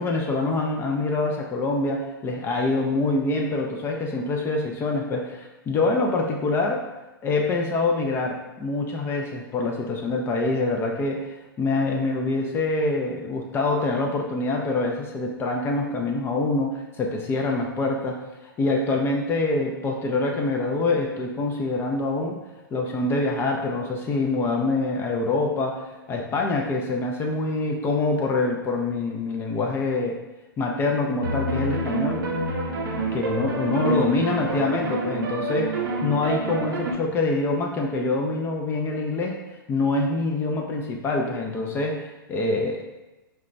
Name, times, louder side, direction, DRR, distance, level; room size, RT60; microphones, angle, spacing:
voice 1, 0.0-6.9 7.2-18.2 18.6-22.4 22.7-25.8 26.1-30.2 30.6-32.3 33.1-39.4 39.7-42.8, left 3 dB, 20° left, 1 dB, 0.4 m, -25 dB
sound 1, 31.2-36.9, right 2 dB, 65° right, 0.6 m, -27 dB
2.9 x 2.2 x 3.8 m, 1.1 s
figure-of-eight pair, 110°, 12 cm